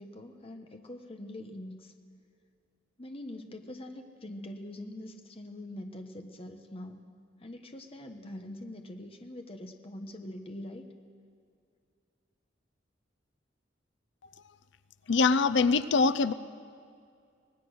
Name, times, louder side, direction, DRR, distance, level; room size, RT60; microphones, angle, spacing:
voice 1, 0.0-1.9 3.0-7.0 7.4-10.9, left 1 dB, 30° left, 5 dB, 1.1 m, -43 dB
voice 2, 15.1-16.3, left 4 dB, 70° left, 14 dB, 0.6 m, -23 dB
25.0 x 19.5 x 6.3 m, 2.3 s
head